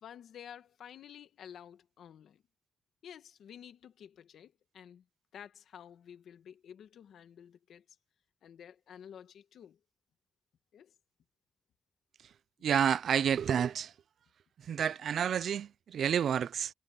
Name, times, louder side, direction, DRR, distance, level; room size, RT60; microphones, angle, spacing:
voice 1, 0.0-2.4 3.0-5.0 5.3-7.8 8.4-9.8 10.7-10.9, left 9 dB, 90° left, 1.9 m, -51 dB
voice 2, 12.6-13.9 14.7-16.7, right 8 dB, 75° right, 0.5 m, -29 dB
cardioid pair, 105°, 0 cm